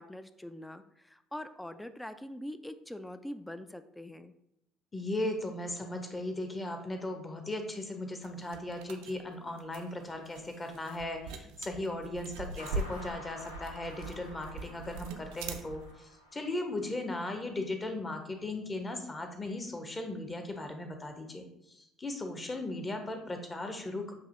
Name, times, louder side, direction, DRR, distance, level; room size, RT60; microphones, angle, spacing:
voice 1, 0.0-4.3, left 1 dB, 5° left, 11 dB, 0.4 m, -43 dB
voice 2, 4.9-21.5 21.7-24.1, left 2 dB, 20° left, 5 dB, 0.8 m, -37 dB
sound 1, 8.2-15.9, right 3 dB, 65° right, 0.4 m, -42 dB
sound 2, 12.6-17.4, left 1 dB, 80° left, 0.5 m, -50 dB
7.2 x 2.7 x 2.5 m, 0.79 s
figure-of-eight pair, 55°, 0 cm